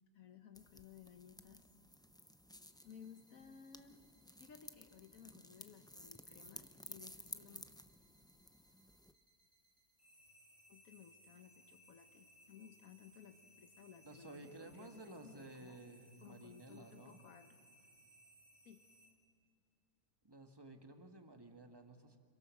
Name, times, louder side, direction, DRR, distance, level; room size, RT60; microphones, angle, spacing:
voice 1, 0.1-1.7 2.8-4.0 4.4-7.6 10.7-15.8 16.2-17.7 18.6-18.8, left 7 dB, 70° left, 7 dB, 1.4 m, -58 dB
sound 1, 0.5-9.1, left 1 dB, 5° left, 0.3 m, -56 dB
sound 2, 2.8-19.1, equal, 65° right, 5.5 m, -67 dB
voice 2, 14.0-17.2 20.2-22.2, right 2 dB, 15° right, 5 dB, 1.6 m, -54 dB
26.5 x 23.0 x 6.5 m, 2.3 s
omnidirectional pair, 1.5 m